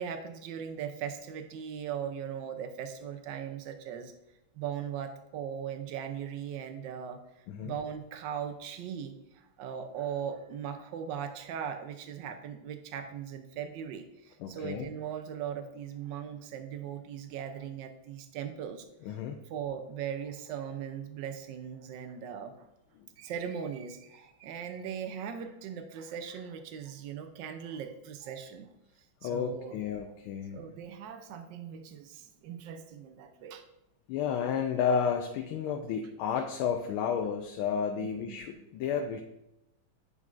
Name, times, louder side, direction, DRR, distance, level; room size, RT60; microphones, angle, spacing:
voice 1, 0.0-4.1 4.5-7.2 7.6-18.9 19.5-22.7 23.2-28.7 29.2-29.8 30.5-33.6 38.0-38.5, right 8 dB, 70° right, 8 dB, 1.3 m, -39 dB
voice 2, 14.4-14.9 19.0-19.4 23.0-23.1 29.2-30.6 34.1-39.2, left 7 dB, 90° left, 4 dB, 1.5 m, -32 dB
9.4 x 5.2 x 2.5 m, 0.88 s
omnidirectional pair, 2.2 m